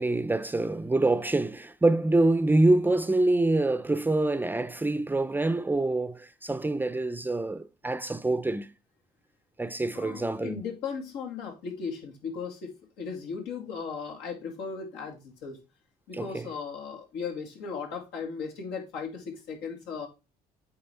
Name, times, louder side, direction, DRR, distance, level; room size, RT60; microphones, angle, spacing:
voice 1, 0.0-8.7 9.6-10.6 16.1-16.5, right 2 dB, 10° right, 0.5 m, -26 dB
voice 2, 9.9-15.6 16.1-20.1, left 5 dB, 90° left, 2.2 m, -37 dB
8.6 x 4.0 x 4.4 m
cardioid pair, 110°, 17 cm